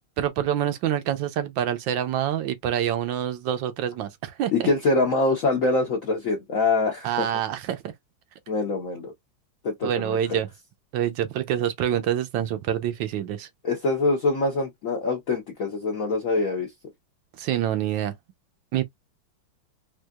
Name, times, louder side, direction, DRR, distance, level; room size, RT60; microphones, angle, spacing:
voice 1, 0.2-4.7 7.0-7.9 9.8-10.5 10.9-13.5 17.4-18.1 18.7-18.8, right 10 dB, 75° right, 1.3 m, -26 dB
voice 2, 4.5-7.3 8.5-9.1 9.6-10.4 13.6-16.7, left 3 dB, 55° left, 1.0 m, -24 dB
4.5 x 2.4 x 2.3 m
omnidirectional pair, 2.2 m